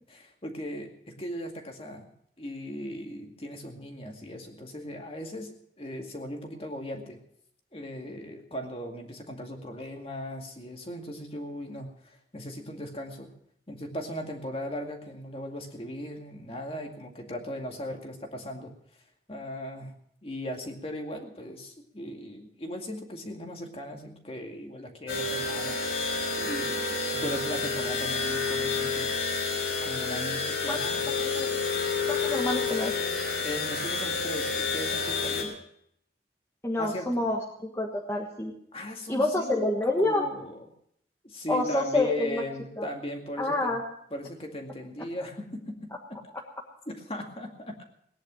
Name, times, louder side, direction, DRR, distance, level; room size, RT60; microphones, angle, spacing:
voice 1, 0.1-2.1 2.4-7.2 7.7-13.3 13.7-18.7 19.3-19.9 20.2-25.8 26.4-29.2 29.8-31.2 33.4-35.5 36.8-37.3 38.7-39.7 40.0-40.7 41.2-43.8 44.1-46.2 46.9-47.8, left 1 dB, 30° left, 3 dB, 2.2 m, -38 dB
sound 1, 25.1-35.4, left 4 dB, 75° left, 4.6 m, -29 dB
voice 2, 31.1-31.5 32.1-32.9 36.6-38.5 39.1-40.2 41.5-42.4 42.8-42.9 43.4-43.8, left 2 dB, 15° left, -2 dB, 1.4 m, -28 dB
19.0 x 10.5 x 6.3 m, 0.70 s
head